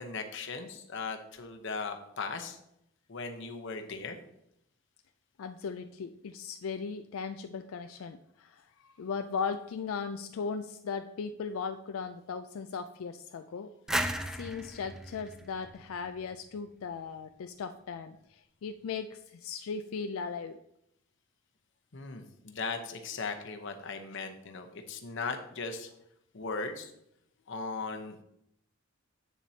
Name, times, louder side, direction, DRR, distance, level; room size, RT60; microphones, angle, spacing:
voice 1, 0.0-2.6 3.1-4.2 21.9-25.9 26.3-26.9 27.5-28.2, left 4 dB, 60° left, 5 dB, 0.9 m, -38 dB
voice 2, 5.4-13.7 14.3-20.6, left 5 dB, 75° left, 8 dB, 0.4 m, -38 dB
sound 1, 13.9-16.6, equal, 5° right, 0.3 m, -35 dB
8.3 x 7.3 x 2.8 m, 0.78 s
head